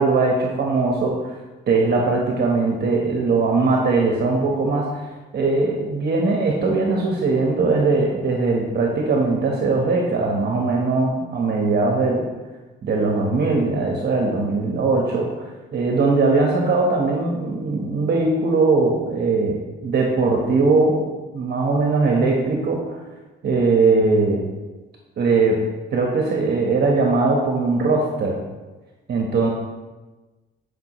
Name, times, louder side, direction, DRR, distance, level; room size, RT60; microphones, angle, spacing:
voice 1, 0.0-1.3 1.7-5.0 5.3-12.3 12.8-15.3 15.7-21.1 21.3-23.0 23.4-24.4 25.2-28.4 29.1-29.5, right 3 dB, 55° right, -1 dB, 1.2 m, -20 dB
10.5 x 5.2 x 3.1 m, 1.2 s
cardioid pair, 90°, 20 cm